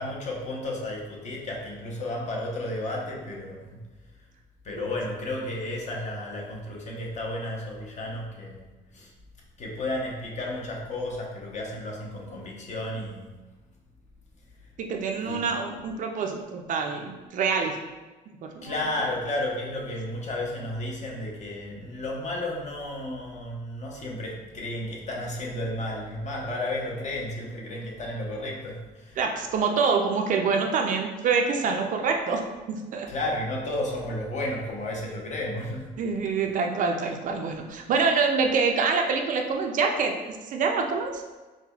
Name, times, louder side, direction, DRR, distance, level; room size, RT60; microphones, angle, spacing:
voice 1, 0.0-3.8 4.6-9.1 9.6-13.3 15.2-15.5 18.6-29.2 33.1-35.9, left 1 dB, 45° left, -1 dB, 0.8 m, -33 dB
voice 2, 14.8-17.8 18.5-18.7 29.2-33.1 36.0-41.2, right 5 dB, 50° right, 3 dB, 0.4 m, -26 dB
4.7 x 2.2 x 2.3 m, 1.2 s
cardioid pair, 110°, 17 cm